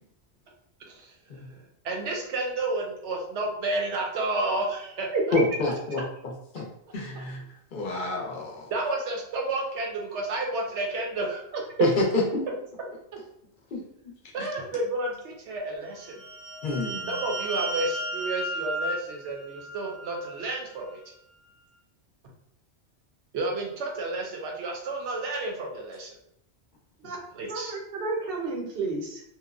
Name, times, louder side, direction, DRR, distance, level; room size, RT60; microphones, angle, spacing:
voice 1, 0.9-1.4 1.8-5.4 8.7-11.5 14.3-16.2 17.1-21.0 23.3-26.2 27.3-27.7, right 2 dB, 90° right, 0 dB, 1.0 m, -31 dB
voice 2, 5.3-6.0 6.5-7.4 7.7-8.7 11.8-12.4 13.7-14.1 16.6-17.2, left 2 dB, 55° left, -1 dB, 0.6 m, -28 dB
sound 1, 16.0-20.4, right 1 dB, 15° right, 0.6 m, -34 dB
voice 3, 27.5-29.2, right 5 dB, 65° right, 1 dB, 0.7 m, -29 dB
2.9 x 2.0 x 2.4 m, 0.75 s
omnidirectional pair, 1.1 m